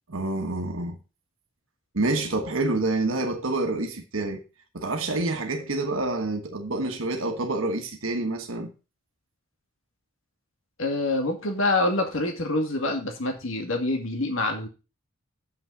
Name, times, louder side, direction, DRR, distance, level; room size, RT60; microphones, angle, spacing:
voice 1, 0.1-1.0 1.9-4.4 4.7-8.7, right 2 dB, 75° right, 1.3 m, -27 dB
voice 2, 10.8-14.7, left 2 dB, 70° left, 2.3 m, -26 dB
7.2 x 6.1 x 7.0 m
head